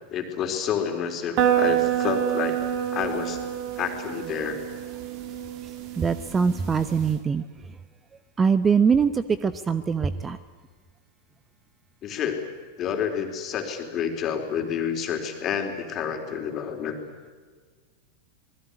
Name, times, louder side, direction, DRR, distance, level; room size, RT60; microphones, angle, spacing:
voice 1, 0.1-2.6 2.9-3.4 3.8-4.6 12.0-12.4 12.8-17.0, left 8 dB, 30° left, 5 dB, 4.0 m, -29 dB
sound 1, 1.4-7.1, right 10 dB, 40° right, 2.9 m, -27 dB
voice 2, 6.0-7.5 8.4-10.4, right 6 dB, 20° right, 15 dB, 0.9 m, -22 dB
26.5 x 20.0 x 9.9 m, 1.5 s
figure-of-eight pair, 90°, 0 cm